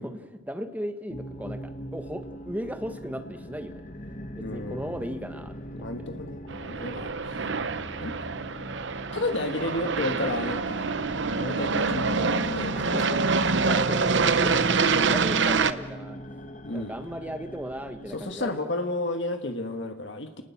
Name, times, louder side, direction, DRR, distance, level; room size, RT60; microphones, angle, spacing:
voice 1, 0.0-3.8 4.3-5.9 12.8-16.2 16.7-18.6, equal, 10° right, 6 dB, 1.4 m, -36 dB
sound 1, 1.1-18.6, equal, 40° left, 1.3 m, -41 dB
voice 2, 4.4-4.9 5.7-7.3 8.0-8.2 9.1-11.0 11.4-13.0 16.6-17.0 18.1-20.4, left 2 dB, 60° left, 6 dB, 1.6 m, -32 dB
Aircraft, 6.5-15.7, right 4 dB, 60° right, 0.8 m, -26 dB
29.5 x 19.5 x 7.2 m, 1.2 s
head